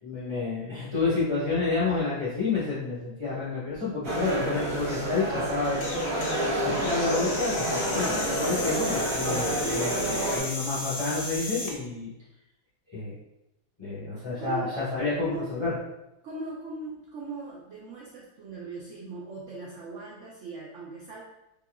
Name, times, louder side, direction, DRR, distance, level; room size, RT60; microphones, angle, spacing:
voice 1, 0.0-5.8 6.2-12.1 12.9-13.1 13.8-15.7, left 4 dB, 15° left, -10 dB, 1.2 m, -29 dB
sound 1, 4.0-10.4, right 1 dB, 55° right, 1.6 m, -29 dB
sound 2, 5.6-11.8, left 2 dB, 90° left, 1.5 m, -35 dB
voice 2, 14.3-14.7 15.0-15.6 16.2-21.2, right 3 dB, 85° right, -4 dB, 0.6 m, -39 dB
4.7 x 3.4 x 2.3 m, 0.92 s
omnidirectional pair, 2.1 m